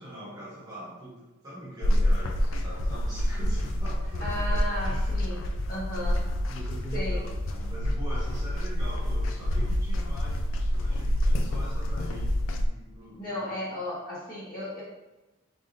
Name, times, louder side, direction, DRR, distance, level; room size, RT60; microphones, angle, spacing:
voice 1, 0.0-5.1 5.4-5.5 6.0-6.1 6.5-13.5, equal, 20° right, -8 dB, 1.1 m, -43 dB
sound 1, 1.8-12.7, equal, 65° left, 0.3 m, -27 dB
voice 2, 4.2-6.3 6.9-7.3 13.2-14.8, left 1 dB, 40° left, -7 dB, 1.4 m, -35 dB
3.7 x 3.5 x 2.6 m, 1.0 s
head